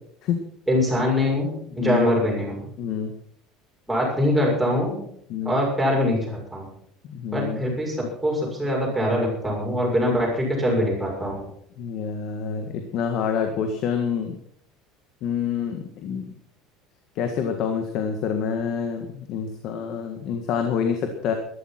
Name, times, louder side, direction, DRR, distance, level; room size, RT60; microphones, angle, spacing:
voice 1, 0.7-2.6 3.9-5.0 5.4-6.7 7.3-11.4, left 1 dB, ahead, -4 dB, 6.8 m, -23 dB
voice 2, 1.8-2.1 2.8-3.1 5.3-5.6 7.1-7.6 11.8-14.4 15.2-16.3 17.2-21.3, left 7 dB, 45° left, 5 dB, 1.8 m, -27 dB
14.5 x 13.0 x 6.1 m, 0.67 s
cardioid pair, 165°, 0 cm